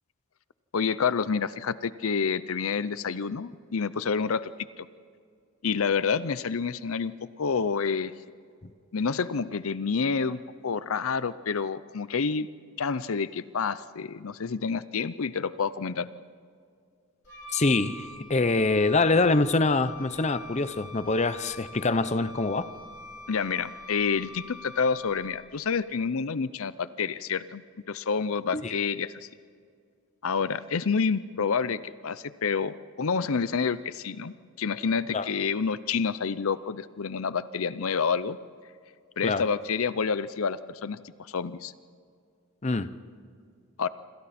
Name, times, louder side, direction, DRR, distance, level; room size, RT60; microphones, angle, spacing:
voice 1, 0.7-4.5 4.8-4.9 5.6-8.1 8.9-12.5 12.8-16.1 23.3-27.6 27.9-29.1 30.2-38.4 39.2-41.0 41.3-41.7 43.8-43.9, left 5 dB, 70° left, 15 dB, 0.6 m, -28 dB
Wind instrument woodwind instrument, 17.2-25.6, left 2 dB, 55° left, 5.0 m, -45 dB
voice 2, 17.5-22.7 28.5-28.8 35.1-35.3 39.2-39.4 42.6-42.9, left 3 dB, 30° left, 12 dB, 0.7 m, -25 dB
27.5 x 26.5 x 4.3 m, 2.2 s
head